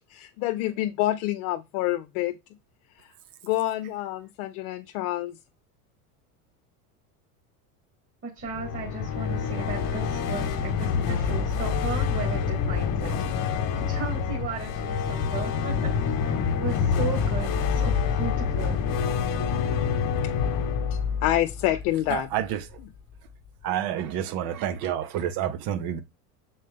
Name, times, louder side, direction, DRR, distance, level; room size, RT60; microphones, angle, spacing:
voice 1, 0.0-2.3 2.9-3.1 3.4-5.4 20.9-22.3, left 15 dB, 65° left, 0.7 m, -27 dB
voice 2, 8.2-13.2 13.4-15.9 16.2-18.8, right 5 dB, 30° right, 1.9 m, -36 dB
sound 1, 8.4-22.5, left 6 dB, 50° left, 1.2 m, -27 dB
voice 3, 22.1-22.8 23.6-26.0, right 10 dB, 55° right, 0.8 m, -29 dB
6.4 x 4.2 x 3.6 m
supercardioid pair, 110°, 44 cm